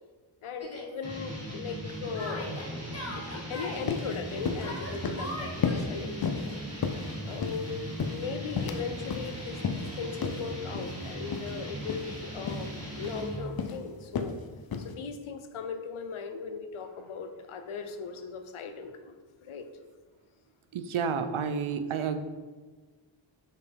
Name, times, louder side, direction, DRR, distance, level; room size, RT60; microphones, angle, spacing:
voice 1, 0.4-2.7 3.1-6.6 7.2-14.4 14.8-19.2 19.4-19.7, left 5 dB, 85° left, 8 dB, 0.7 m, -38 dB
Yell, 0.6-0.9 2.1-3.8 4.6-5.8, left 1 dB, 30° left, 1.3 m, -40 dB
sound 1, 1.0-13.6, right 1 dB, 30° right, 1.9 m, -39 dB
sound 2, 3.5-3.6 3.9-4.1 4.4-4.7 5.0-5.3 5.6-5.9 6.2-6.5 6.8-7.6 8.0-8.8 9.1-9.3 9.6-9.9 10.2-10.4 10.7-10.9 11.3-11.5 11.8-12.0 12.5-12.7 13.0-13.3 13.6-13.8 14.1-14.4 14.7-14.9, left 6 dB, 50° left, 0.6 m, -32 dB
voice 2, 20.7-22.2, right 6 dB, 75° right, 9 dB, 0.6 m, -30 dB
5.9 x 5.5 x 3.5 m, 1.4 s
wide cardioid pair, 90°, 48 cm